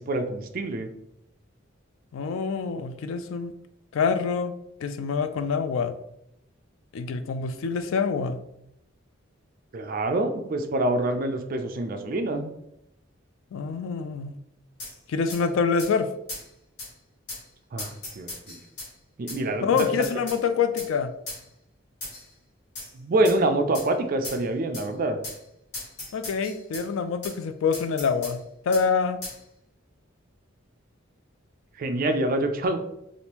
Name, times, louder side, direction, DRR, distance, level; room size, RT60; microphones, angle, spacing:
voice 1, 0.1-0.9 9.7-12.5 17.7-18.6 19.2-20.0 22.9-25.2 31.8-32.8, right 2 dB, 45° right, 6 dB, 0.4 m, -26 dB
voice 2, 2.1-3.5 3.9-4.5 4.8-5.9 6.9-8.4 13.5-14.4 15.1-16.1 19.6-21.1 26.1-29.2, left 5 dB, 75° left, 11 dB, 0.3 m, -26 dB
sound 1, 14.8-14.9 15.3-15.4 15.8-15.9 16.3-16.5 16.8-16.9 17.3-17.4 17.8-18.9 19.3-19.4 19.8-20.4 20.8-20.9 21.3-21.4 22.0-22.3 22.8-22.9 23.3-23.4 23.7-23.9 24.2-24.4 24.7-24.9 25.2-25.4 25.7-26.9 27.2-27.4 27.7-28.4 28.7-28.9 29.2-29.4, left 2 dB, 55° left, 1.2 m, -37 dB
3.4 x 2.5 x 2.9 m, 0.79 s
head